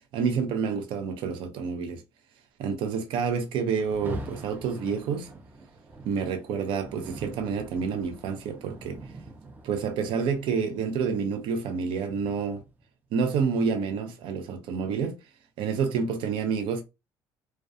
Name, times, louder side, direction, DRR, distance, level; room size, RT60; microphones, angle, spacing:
voice 1, 0.1-2.0 2.6-5.3 6.1-9.0 9.6-12.6 13.1-15.2 15.6-16.8, right 6 dB, 70° right, 0.5 m, -28 dB
Rain, 3.7-12.8, right 2 dB, 20° right, 0.5 m, -43 dB
2.3 x 2.2 x 2.6 m
cardioid pair, 120°, 9 cm